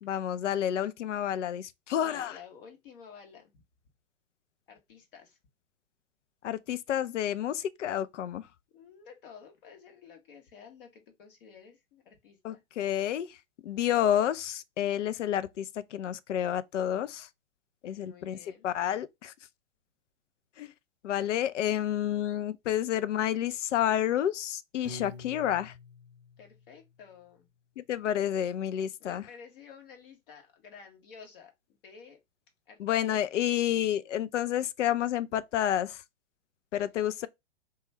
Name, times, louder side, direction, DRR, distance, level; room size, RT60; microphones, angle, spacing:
voice 1, 0.0-2.4 6.4-8.5 12.4-13.4 13.6-17.3 17.8-19.3 20.6-20.7 21.0-25.7 27.8-29.3 32.8-36.0 36.7-37.3, left 11 dB, 70° left, 0.5 m, -30 dB
voice 2, 2.0-3.5 4.7-5.4 8.7-12.6 17.9-18.7 26.4-27.5 29.0-31.5 31.8-32.2 32.7-33.2 33.7-33.8, left 6 dB, 45° left, 1.3 m, -52 dB
Piano, 24.8-27.1, left 2 dB, 15° right, 0.5 m, -47 dB
3.0 x 2.3 x 4.2 m
figure-of-eight pair, 115°, 38 cm